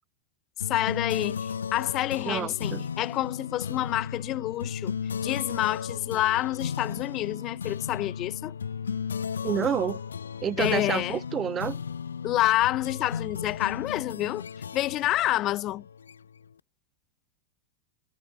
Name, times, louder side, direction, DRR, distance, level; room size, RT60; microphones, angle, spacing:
sound 1, 0.6-16.5, left 7 dB, 70° left, 0.9 m, -35 dB
voice 1, 0.7-4.9 5.2-8.5 10.6-11.2 12.2-14.5 14.7-15.8, left 15 dB, 35° left, 0.6 m, -28 dB
voice 2, 2.3-2.9 9.4-10.0 10.4-11.8, right 8 dB, 25° right, 1.4 m, -29 dB
figure-of-eight pair, 90°, 0 cm